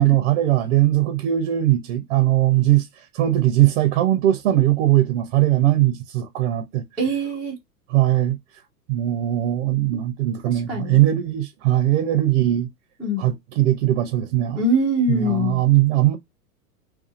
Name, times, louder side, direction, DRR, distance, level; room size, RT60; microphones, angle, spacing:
voice 1, 0.0-6.8 7.9-8.4 8.9-12.7 13.2-14.6 15.1-16.2, right 14 dB, 45° right, 0.6 m, -20 dB
voice 2, 7.0-7.6 10.5-11.0 13.0-13.3 14.6-15.6, equal, ahead, 0.4 m, -23 dB
2.5 x 2.3 x 2.4 m
hypercardioid pair, 120°, 48 cm